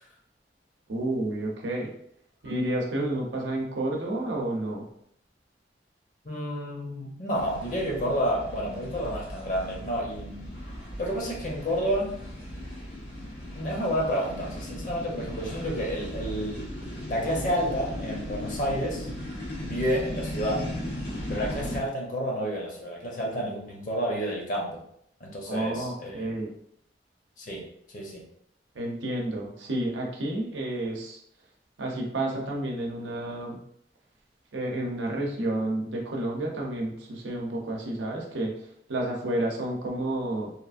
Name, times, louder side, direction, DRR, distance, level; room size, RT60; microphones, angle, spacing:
voice 1, 0.9-1.9 2.4-4.9 25.5-26.5 28.7-31.2 31.8-33.6 34.5-38.5 38.9-40.5, right 1 dB, 90° right, 0 dB, 0.6 m, -30 dB
voice 2, 6.2-10.5 11.0-12.2 13.5-16.8 17.1-19.1 19.6-20.6 21.3-24.8 25.2-26.3 27.4-27.6 27.9-28.2, equal, 45° left, -2 dB, 0.7 m, -30 dB
sound 1, 7.3-21.8, left 1 dB, 85° left, 1.1 m, -37 dB
2.9 x 2.4 x 2.4 m, 0.70 s
head